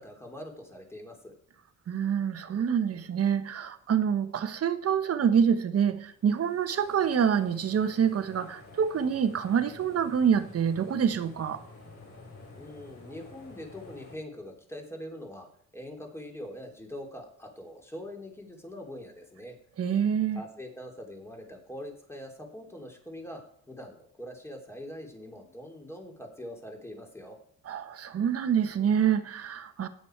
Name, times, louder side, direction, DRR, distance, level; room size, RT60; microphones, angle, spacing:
voice 1, 0.0-1.3 12.6-19.6 20.3-27.4, left 1 dB, 10° left, 3.2 m, -43 dB
voice 2, 1.9-11.6 19.8-20.4 27.7-29.9, right 8 dB, 50° right, 1.2 m, -26 dB
sound 1, 6.1-14.2, left 2 dB, 55° left, 6.0 m, -50 dB
14.0 x 9.8 x 4.6 m
cardioid pair, 90°, 30 cm